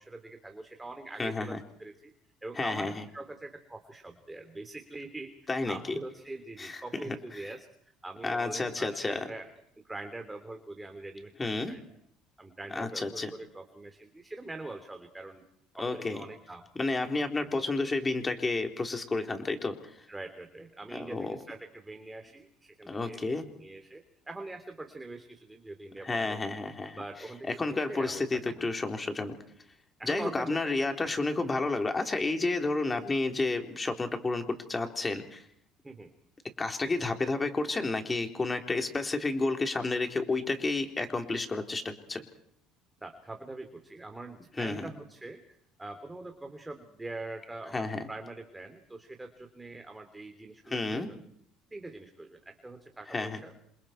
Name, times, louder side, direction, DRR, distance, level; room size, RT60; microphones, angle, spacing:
voice 1, 0.0-2.1 2.4-9.5 9.8-11.3 11.7-11.8 12.4-15.4 15.7-16.7 17.4-17.5 20.1-23.2 23.5-26.4 26.9-28.7 30.0-31.1 32.9-33.1 35.8-36.1 43.0-51.2 51.7-53.5, right 2 dB, 10° right, 6 dB, 3.1 m, -43 dB
voice 2, 1.2-1.6 2.6-3.0 5.5-6.0 6.6-6.8 7.3-7.5 8.2-9.2 11.4-11.7 12.8-13.3 15.8-16.2 16.8-19.9 20.9-21.4 22.9-23.5 26.0-27.0 27.4-29.3 30.0-35.5 36.6-42.2 44.6-44.8 47.7-48.0 50.7-51.1 53.1-53.4, left 3 dB, 15° left, 4 dB, 3.8 m, -31 dB
28.0 x 27.5 x 4.6 m, 0.67 s
cardioid pair, 130°, 0 cm